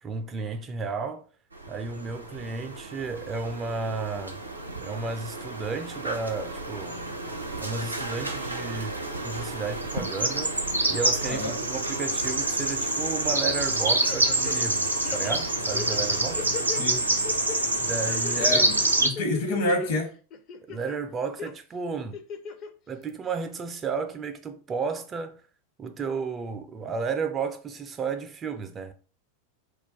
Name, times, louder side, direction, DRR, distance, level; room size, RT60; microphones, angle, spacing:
voice 1, 0.0-1.3 1.7-4.4 4.8-7.1 7.6-9.0 9.2-10.6 10.9-16.5 17.7-18.6 20.7-22.2 22.9-25.4 25.8-28.9, right 4 dB, 25° right, 0.3 m, -33 dB
sound 1, 1.6-19.1, right 2 dB, 85° right, 0.4 m, -28 dB
sound 2, 14.0-14.8 15.0-16.8 17.2-17.6 18.1-18.7 19.0-19.9 20.3-21.0 21.4-21.5 22.1-22.7 23.1-23.2, left 6 dB, 40° left, 0.4 m, -37 dB
voice 2, 18.4-20.1, left 2 dB, 55° left, 0.9 m, -28 dB
2.3 x 2.2 x 3.7 m
figure-of-eight pair, 90°, 0 cm